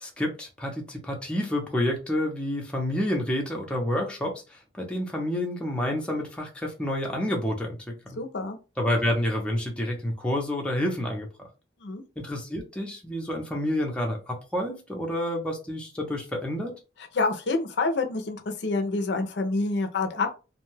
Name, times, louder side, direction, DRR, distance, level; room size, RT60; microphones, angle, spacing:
voice 1, 0.0-4.4 4.8-7.8 8.1-8.2 8.8-11.5 12.2-16.8, left 1 dB, 5° left, 0.5 m, -29 dB
voice 2, 8.2-8.6 11.8-12.0 17.1-20.4, left 3 dB, 60° left, 0.5 m, -27 dB
2.6 x 2.2 x 3.1 m
head